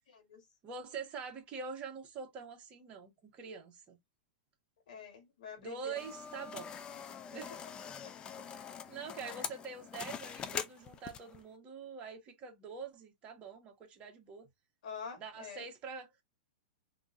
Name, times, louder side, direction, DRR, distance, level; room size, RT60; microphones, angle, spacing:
voice 1, 0.1-0.4 4.9-6.0 7.5-7.6 8.0-8.1 14.8-15.6, left 6 dB, 75° left, 1.5 m, -46 dB
voice 2, 0.6-4.0 5.6-6.8 7.3-7.7 8.4-14.5 15.2-16.2, right 5 dB, 30° right, 1.4 m, -45 dB
sound 1, 6.0-11.4, left 7 dB, 20° left, 0.4 m, -43 dB
3.7 x 2.6 x 2.5 m
hypercardioid pair, 135°, 4 cm